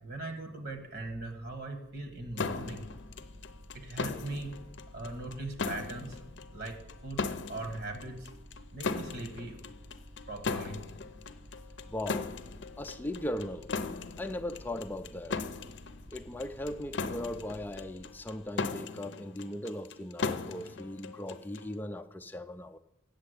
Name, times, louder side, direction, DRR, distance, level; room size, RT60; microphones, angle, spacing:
voice 1, 0.0-2.8 3.7-4.5 4.9-6.2 6.5-7.2 7.5-8.3 8.7-9.6 10.3-10.8, right 2 dB, 55° right, 1.5 m, -40 dB
Mechanical fan, 1.9-18.7, left 1 dB, 40° right, 0.9 m, -52 dB
sound 1, 2.4-21.7, left 4 dB, 70° left, 0.6 m, -38 dB
voice 2, 11.9-12.3 12.8-13.7 14.2-15.4 16.1-22.8, left 1 dB, 10° left, 0.4 m, -38 dB
8.7 x 7.1 x 8.2 m
head